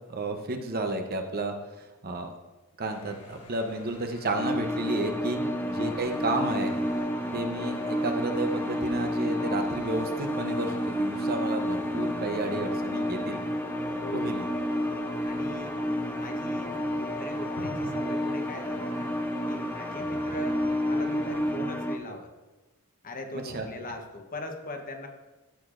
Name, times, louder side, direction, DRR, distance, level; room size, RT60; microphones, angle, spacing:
voice 1, 0.1-2.4 2.8-5.4 5.7-6.8 7.3-13.4 14.1-14.5 23.3-23.7, right 2 dB, 45° right, 5 dB, 0.8 m, -32 dB
sound 1, 2.8-21.6, left 1 dB, 75° left, 1.2 m, -46 dB
sound 2, 4.4-22.0, equal, 10° left, 0.6 m, -30 dB
voice 2, 5.3-5.8 14.0-14.4 15.3-15.8 16.1-19.1 19.5-22.3 23.0-25.1, left 1 dB, 40° left, 4 dB, 0.9 m, -40 dB
13.0 x 6.8 x 2.5 m, 1.1 s
head